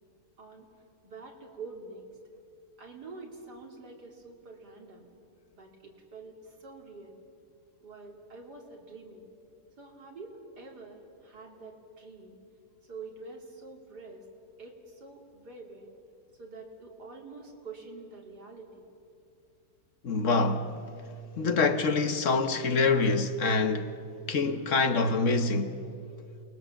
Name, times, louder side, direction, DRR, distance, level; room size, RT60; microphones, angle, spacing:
voice 1, 1.0-2.0 2.8-5.1 5.5-7.2 7.8-9.2 9.8-12.4 12.9-14.2 14.6-15.9 16.4-18.9, right 3 dB, 80° right, 3.5 m, -46 dB
voice 2, 20.0-20.8 21.4-25.8, left 3 dB, 55° left, 1.3 m, -26 dB
29.0 x 20.5 x 7.1 m
omnidirectional pair, 1.7 m